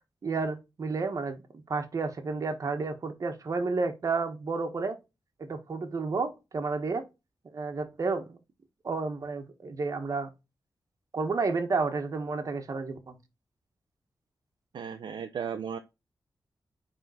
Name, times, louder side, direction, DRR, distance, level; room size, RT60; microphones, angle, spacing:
voice 1, 0.2-1.4 1.7-5.0 5.4-7.0 7.5-8.4 8.8-10.3 11.1-13.2, right 4 dB, 45° right, 1.4 m, -31 dB
voice 2, 14.7-15.8, right 7 dB, 85° right, 0.6 m, -35 dB
9.3 x 3.7 x 4.1 m
wide cardioid pair, 160°, 8 cm